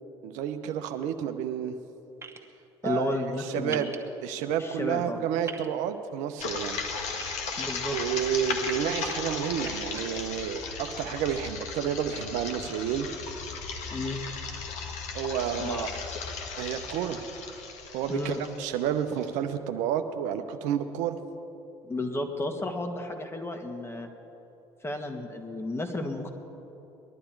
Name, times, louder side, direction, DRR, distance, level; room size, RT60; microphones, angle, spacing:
voice 1, 0.2-1.8 2.8-3.9 4.2-6.8 7.9-13.1 15.1-15.9 16.6-17.2 17.9-21.2, right 9 dB, 65° right, 7 dB, 0.8 m, -30 dB
sound 1, 2.2-2.4 3.7-4.0 5.5-5.7 7.2-7.8 8.4-8.7 9.6-10.0, right 4 dB, 20° right, 1.4 m, -40 dB
voice 2, 2.8-3.8 4.6-5.2 7.6-8.0 13.9-14.2 15.6-15.9 18.1-18.4 21.8-24.1 24.8-26.3, left 2 dB, 20° left, 5 dB, 1.8 m, -32 dB
sound 2, 6.4-19.2, left 5 dB, 60° left, 1.6 m, -36 dB
20.5 x 11.5 x 4.7 m, 3.0 s
hypercardioid pair, 60°, 13 cm